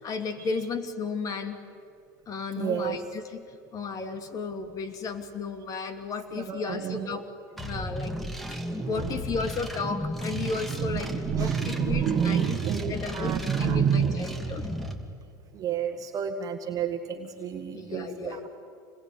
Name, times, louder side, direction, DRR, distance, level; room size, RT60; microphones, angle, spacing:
voice 1, 0.0-1.6 2.3-3.4 3.7-7.2 7.5-8.1 8.5-8.6 8.9-12.6 12.9-14.7 17.7-18.5, left 4 dB, 40° left, 7 dB, 3.0 m, -34 dB
voice 2, 2.6-3.0 6.4-7.2 8.8-9.2 10.3-14.2 15.5-18.4, right 8 dB, 35° right, 5 dB, 1.8 m, -29 dB
sound 1, 7.6-14.9, equal, ahead, 2.7 m, -34 dB
27.5 x 21.0 x 9.7 m, 2.3 s
hypercardioid pair, 95°, 10 cm